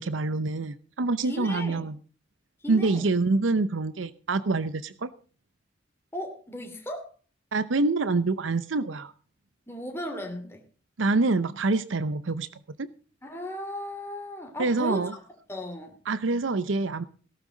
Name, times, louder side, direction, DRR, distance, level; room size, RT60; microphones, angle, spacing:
voice 1, 0.0-2.0 2.7-5.1 7.5-9.1 11.0-12.5 12.8-12.9 14.6-15.1 16.1-17.0, right 3 dB, 85° right, 14 dB, 0.7 m, -26 dB
voice 2, 1.2-1.9 2.6-3.1 6.1-7.1 9.7-10.6 13.2-15.2 15.5-16.0, left 1 dB, 15° left, 3 dB, 2.8 m, -36 dB
18.0 x 12.5 x 3.9 m, 0.39 s
head